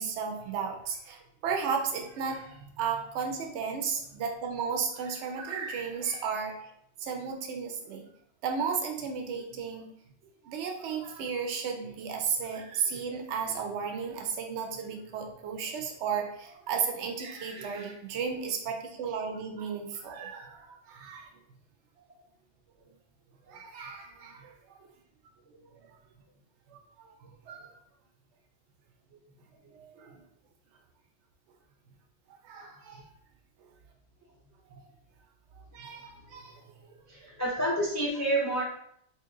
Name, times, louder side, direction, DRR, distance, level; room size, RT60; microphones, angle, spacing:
voice 1, 0.0-6.7 7.0-8.1 8.4-9.9 10.4-21.3 23.5-24.9 25.8-26.0 26.7-26.8 27.5-27.7 29.6-30.2 32.4-33.0 34.7-34.8 35.7-36.6, right 6 dB, 70° right, 3 dB, 0.9 m, -34 dB
voice 2, 17.5-17.9 20.4-21.2 23.5-24.1 27.6-27.8 32.5-33.0 35.6-36.5 37.1-38.6, right 1 dB, 25° left, -3 dB, 0.3 m, -34 dB
2.9 x 2.9 x 3.7 m, 0.69 s
omnidirectional pair, 1.3 m